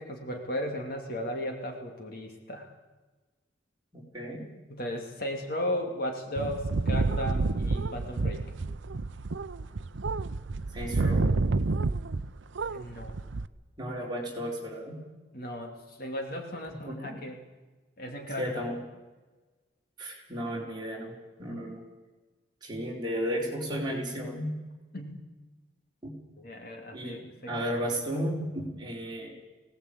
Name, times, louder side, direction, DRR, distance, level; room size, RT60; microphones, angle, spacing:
voice 1, 0.0-2.7 4.7-8.5 12.7-13.2 15.3-17.4 18.0-18.7 24.9-25.2 26.4-27.5, left 1 dB, 50° left, 2 dB, 2.7 m, -36 dB
voice 2, 3.9-4.5 10.7-11.3 13.8-15.0 16.8-17.2 18.4-18.8 20.0-21.9 22.6-24.5 26.0-26.1 26.9-29.3, equal, 20° right, -3 dB, 4.4 m, -34 dB
sound 1, 6.4-12.3 12.5-13.5, right 3 dB, 70° right, 0.6 m, -29 dB
20.0 x 17.5 x 8.5 m, 1.2 s
head